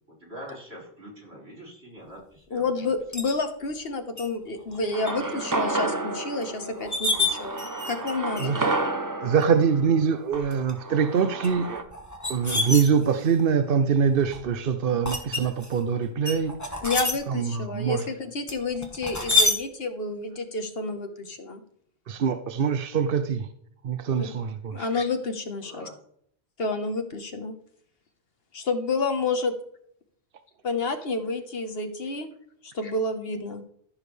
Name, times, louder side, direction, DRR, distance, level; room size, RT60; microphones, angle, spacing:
voice 1, 0.2-2.9 25.6-25.9, equal, 85° right, -5 dB, 5.0 m, -44 dB
voice 2, 2.5-8.6 16.8-21.6 24.2-24.3 24.7-25.9 26.6-27.6 28.5-29.6 30.6-32.3 32.6-33.6, left 3 dB, 70° left, 8 dB, 1.4 m, -29 dB
sound 1, 3.1-3.3 4.2-4.3 4.7-5.1 5.5-5.6 6.4-6.5 6.8-8.1 8.4-8.7 9.4-9.5 10.3-10.7 11.4-13.4 14.0-14.4 15.0-15.8 16.2-17.1 18.5-19.6, left 2 dB, 15° left, 1.7 m, -27 dB
sound 2, 4.9-11.8, right 2 dB, 20° right, 0.7 m, -31 dB
voice 3, 9.2-11.8 12.3-16.6 17.3-18.1 22.1-23.5 23.8-24.9, right 6 dB, 65° right, 9 dB, 0.8 m, -24 dB
14.5 x 7.2 x 3.3 m, 0.67 s
omnidirectional pair, 1.0 m